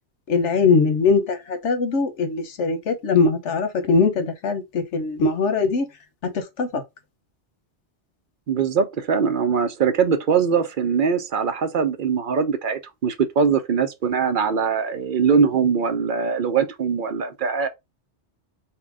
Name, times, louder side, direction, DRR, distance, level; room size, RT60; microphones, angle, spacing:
voice 1, 0.3-5.9 6.2-6.8, left 4 dB, 85° left, 1.2 m, -21 dB
voice 2, 8.5-17.7, right 6 dB, 55° right, 0.7 m, -22 dB
4.3 x 2.2 x 4.6 m
omnidirectional pair, 1.2 m